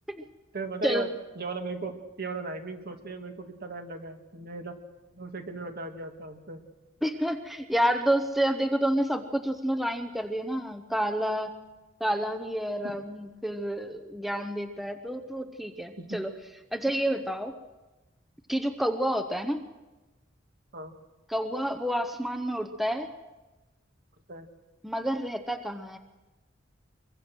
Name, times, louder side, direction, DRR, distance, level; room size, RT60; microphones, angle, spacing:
voice 1, 0.5-1.1 1.4-4.8 5.1-6.7 12.8-13.0 16.0-16.2 20.7-20.9 24.3-24.5, right 3 dB, 55° right, 5 dB, 2.3 m, -37 dB
voice 2, 7.0-11.6 12.0-16.3 16.7-17.5 18.5-19.6 21.3-23.1 24.8-26.0, equal, ahead, 6 dB, 0.9 m, -29 dB
24.0 x 23.0 x 6.3 m, 1.1 s
head